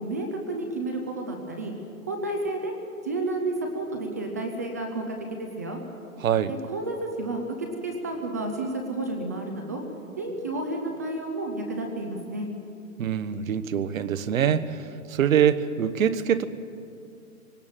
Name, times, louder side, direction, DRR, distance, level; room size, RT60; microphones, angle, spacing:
voice 1, 0.0-1.7 2.1-2.7 3.0-5.8 6.5-7.6 7.8-9.8 10.2-12.5, right 2 dB, 10° right, 3 dB, 0.5 m, -31 dB
voice 2, 6.2-6.5 13.0-14.8 15.1-16.4, right 9 dB, 70° right, 13 dB, 1.2 m, -24 dB
21.0 x 18.0 x 7.4 m, 2.6 s
hypercardioid pair, 170°, 43 cm